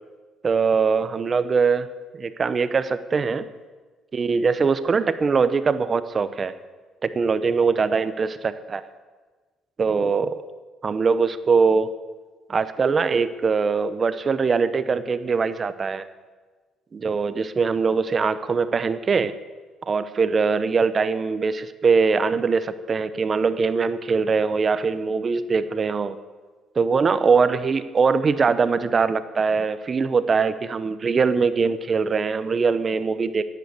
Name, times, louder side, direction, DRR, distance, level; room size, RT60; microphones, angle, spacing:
voice 1, 0.4-1.9 2.1-3.5 4.1-6.5 7.0-8.8 9.8-10.4 10.8-11.9 12.5-16.1 16.9-19.3 19.9-26.2 26.7-33.4, right 5 dB, 35° right, 13 dB, 0.8 m, -22 dB
10.5 x 9.2 x 8.2 m, 1.3 s
cardioid pair, 90°, 0 cm